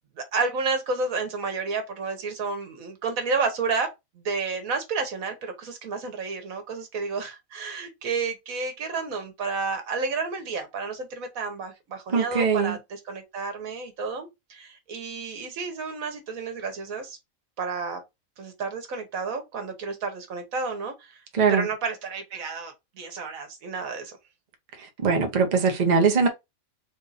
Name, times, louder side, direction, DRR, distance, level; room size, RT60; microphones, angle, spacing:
voice 1, 0.2-3.9 4.1-17.2 17.6-18.0 18.4-21.2 21.5-24.2, right 4 dB, 80° right, 1.5 m, -31 dB
voice 2, 12.1-12.8 21.3-21.7 25.0-26.3, right 5 dB, 40° right, 0.8 m, -21 dB
3.7 x 2.5 x 4.0 m
omnidirectional pair, 1.4 m